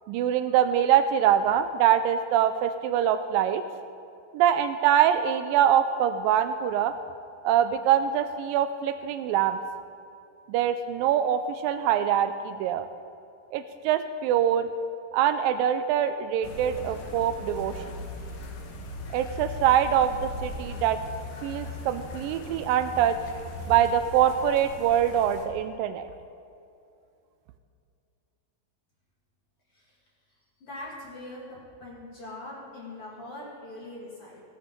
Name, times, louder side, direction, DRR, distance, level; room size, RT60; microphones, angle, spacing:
voice 1, 0.1-3.6 4.3-6.9 7.4-9.6 10.5-12.9 13.5-14.7 15.1-17.7 19.1-21.0 21.4-23.2 23.7-26.1, right 10 dB, 85° right, 10 dB, 2.0 m, -24 dB
sound 1, 16.4-25.5, left 2 dB, 70° left, 2.6 m, -39 dB
voice 2, 30.6-34.4, left 1 dB, 45° left, -5 dB, 2.4 m, -42 dB
16.5 x 7.6 x 5.3 m, 2.5 s
omnidirectional pair, 4.4 m